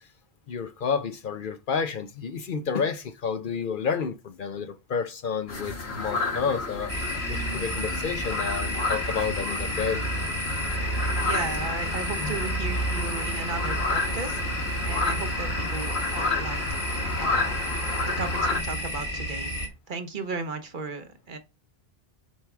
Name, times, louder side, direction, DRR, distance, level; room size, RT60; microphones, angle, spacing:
voice 1, 0.5-10.0, left 6 dB, 60° left, 0.8 m, -30 dB
sound 1, 5.5-18.6, left 3 dB, 85° left, 1.6 m, -31 dB
sound 2, 6.9-19.7, right 1 dB, 35° left, 1.4 m, -31 dB
voice 2, 11.2-14.4 14.8-17.6 18.0-19.5 19.9-21.4, right 3 dB, 55° right, 1.0 m, -35 dB
7.2 x 4.7 x 3.5 m
omnidirectional pair, 1.0 m